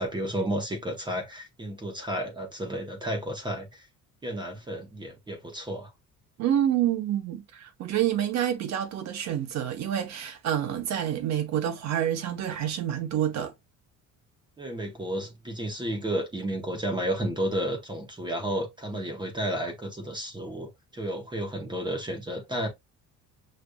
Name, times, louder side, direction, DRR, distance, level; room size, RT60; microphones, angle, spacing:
voice 1, 0.0-3.9 4.2-5.9 14.6-22.7, right 1 dB, 15° right, 0.9 m, -32 dB
voice 2, 6.4-13.5, right 10 dB, 60° right, 0.9 m, -28 dB
6.5 x 2.5 x 2.2 m
cardioid pair, 165°, 32 cm